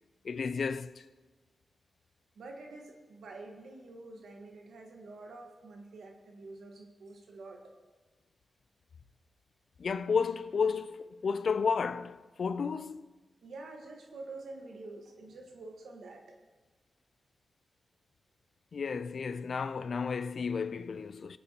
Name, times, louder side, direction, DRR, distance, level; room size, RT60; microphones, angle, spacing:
voice 1, 0.2-1.1 9.8-13.1 18.7-21.4, left 5 dB, 65° left, 0.4 m, -32 dB
voice 2, 2.3-7.7 13.4-16.4, right 2 dB, 90° right, 1.4 m, -47 dB
18.0 x 8.5 x 2.9 m
cardioid pair, 70°, 0 cm